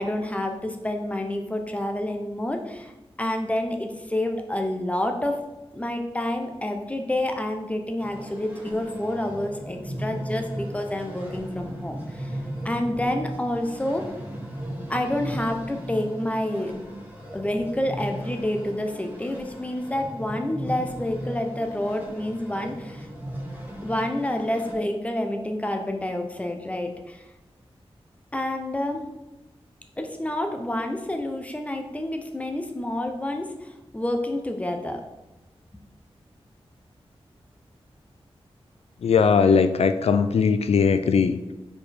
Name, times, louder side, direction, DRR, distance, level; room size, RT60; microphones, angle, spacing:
voice 1, 0.0-2.9 3.2-5.4 5.7-12.3 12.6-14.1 14.9-16.7 17.3-23.1 23.8-27.2 28.3-29.0 30.0-35.0, left 1 dB, 15° left, 4 dB, 0.7 m, -28 dB
sound 1, 8.0-24.8, right 1 dB, 15° right, 1.5 m, -36 dB
voice 2, 39.0-41.5, left 5 dB, 80° left, 10 dB, 0.4 m, -20 dB
5.0 x 4.5 x 4.2 m, 1.0 s
wide cardioid pair, 105°, 10 cm